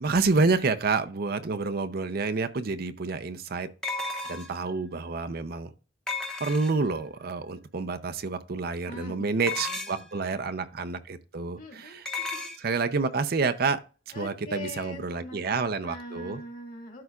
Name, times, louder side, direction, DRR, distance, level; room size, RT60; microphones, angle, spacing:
voice 1, 0.0-3.7 4.3-5.7 6.4-12.0 12.6-13.8 14.1-16.4, right 4 dB, 55° right, 0.6 m, -28 dB
sound 1, 2.3-2.4 3.8-4.7 6.1-7.0 9.4-10.1 12.1-12.6, left 3 dB, 5° left, 1.0 m, -34 dB
voice 2, 8.9-10.5 11.6-12.4 14.1-17.0, left 1 dB, 45° left, 2.2 m, -43 dB
12.5 x 4.9 x 2.4 m
head